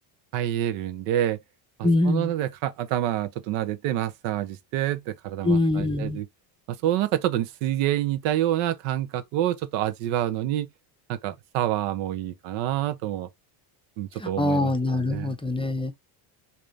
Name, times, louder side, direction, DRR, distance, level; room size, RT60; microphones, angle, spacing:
voice 1, 0.3-1.4 2.1-6.3 6.7-10.7 11.1-13.3 14.0-15.3, right 12 dB, 90° right, 0.9 m, -27 dB
voice 2, 1.8-2.3 5.4-6.2 14.2-16.0, left 2 dB, 10° left, 0.6 m, -24 dB
4.8 x 2.9 x 2.6 m
cardioid pair, 125°, 49 cm